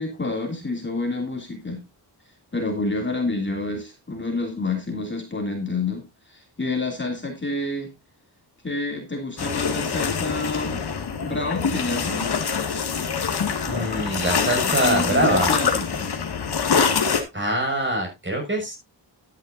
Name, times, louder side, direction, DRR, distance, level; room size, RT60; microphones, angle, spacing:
voice 1, 0.0-1.8 2.5-7.9 8.6-10.8 11.2-12.3 14.6-16.1, left 3 dB, 25° left, 1 dB, 2.9 m, -28 dB
sound 1, 9.4-17.2, left 6 dB, 65° left, 2.2 m, -24 dB
voice 2, 13.7-15.5 17.3-18.7, right 1 dB, 25° right, 2 dB, 6.5 m, -24 dB
13.0 x 10.5 x 2.7 m, 0.23 s
wide cardioid pair, 105°, 42 cm